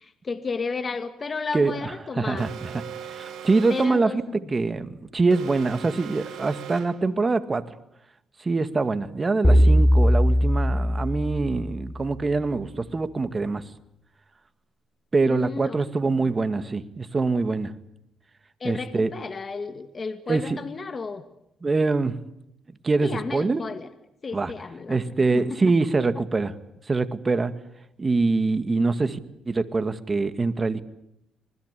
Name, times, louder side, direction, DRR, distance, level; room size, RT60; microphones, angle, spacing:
voice 1, 0.0-2.5 3.7-4.4 15.3-15.8 18.6-21.2 23.0-23.9 24.2-25.0 25.3-25.5, left 4 dB, 35° left, 9 dB, 2.1 m, -33 dB
voice 2, 1.5-2.8 3.1-4.2 4.5-7.6 8.4-13.6 15.1-17.7 18.6-19.1 20.3-20.6 21.6-22.2 22.8-23.6 24.3-24.5 24.9-26.5 26.9-27.5 28.0-29.2 29.5-30.8, right 3 dB, 30° right, 10 dB, 2.1 m, -24 dB
Alarm, 2.4-4.1 5.3-7.1, right 8 dB, 75° right, 6.3 m, -39 dB
sound 1, 9.4-11.9, equal, 15° left, 4.7 m, -19 dB
26.5 x 20.5 x 8.4 m, 0.81 s
cardioid pair, 90°, 0 cm